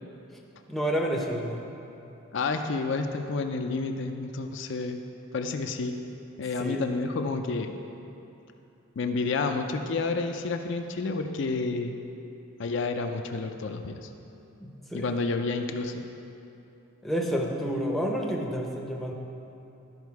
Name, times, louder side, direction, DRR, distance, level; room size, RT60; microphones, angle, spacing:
voice 1, 0.7-1.6 6.6-6.8 14.6-15.1 17.0-19.1, equal, ahead, -1 dB, 0.6 m, -29 dB
voice 2, 2.3-5.0 5.3-6.0 6.4-7.7 9.0-12.0 12.6-14.1 14.9-16.0, left 3 dB, 60° left, 5 dB, 0.4 m, -30 dB
12.0 x 5.2 x 4.7 m, 2.8 s
head